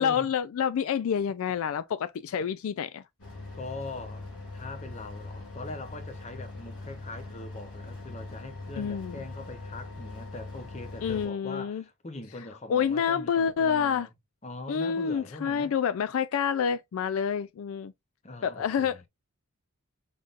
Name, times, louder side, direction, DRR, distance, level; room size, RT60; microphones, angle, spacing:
voice 1, 0.0-3.0 8.8-9.2 11.0-11.8 12.7-14.1 14.7-17.9 18.4-19.1, left 7 dB, 70° left, 0.3 m, -28 dB
sound 1, 3.2-11.3, left 2 dB, 85° left, 2.6 m, -41 dB
voice 2, 3.6-14.1 14.4-15.7 18.2-19.0, left 2 dB, 30° left, 0.8 m, -42 dB
5.2 x 3.7 x 2.5 m
head